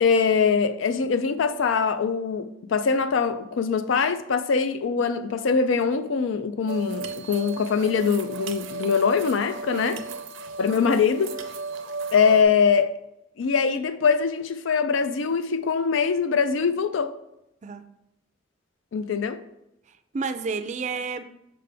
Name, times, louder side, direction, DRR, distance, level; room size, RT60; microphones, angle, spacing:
voice 1, 0.0-10.0 10.6-11.4 12.1-12.9 13.4-17.1 18.9-19.4, left 5 dB, 80° left, 0.4 m, -23 dB
sound 1, 6.7-12.4, right 4 dB, 90° right, 0.6 m, -35 dB
voice 2, 9.7-10.0 17.6-17.8 20.1-21.2, right 4 dB, 40° right, 0.4 m, -30 dB
5.7 x 5.2 x 3.3 m
head